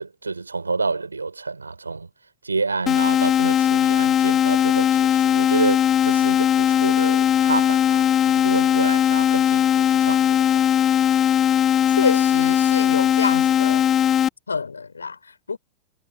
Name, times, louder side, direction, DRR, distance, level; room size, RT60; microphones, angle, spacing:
voice 1, 0.0-2.1 2.4-10.6, right 4 dB, 80° right, 6.9 m, -28 dB
sound 1, 2.9-14.3, left 9 dB, 25° left, 0.7 m, -19 dB
voice 2, 12.0-13.9 14.5-15.6, left 5 dB, 75° left, 5.2 m, -27 dB
figure-of-eight pair, 90°, 0 cm